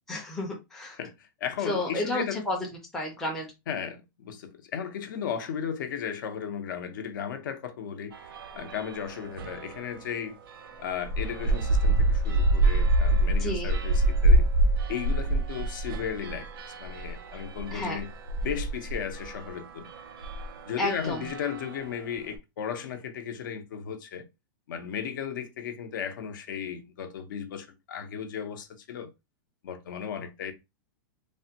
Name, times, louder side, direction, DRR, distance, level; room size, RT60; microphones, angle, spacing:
voice 1, 0.1-1.0 1.7-2.6 2.9-3.5 13.4-13.7 17.7-18.0 20.8-21.3, left 1 dB, 5° left, 0.4 m, -31 dB
voice 2, 0.9-2.4 3.7-8.2 8.5-10.4 10.8-14.5 14.9-16.5 16.8-18.1 18.4-19.9 20.6-24.3 24.7-29.1 29.6-30.5, left 8 dB, 60° left, 0.6 m, -35 dB
sound 1, 8.1-10.0 10.5-22.0, right 1 dB, 85° right, 0.6 m, -27 dB
3.3 x 2.1 x 2.7 m
supercardioid pair, 180°, 12 cm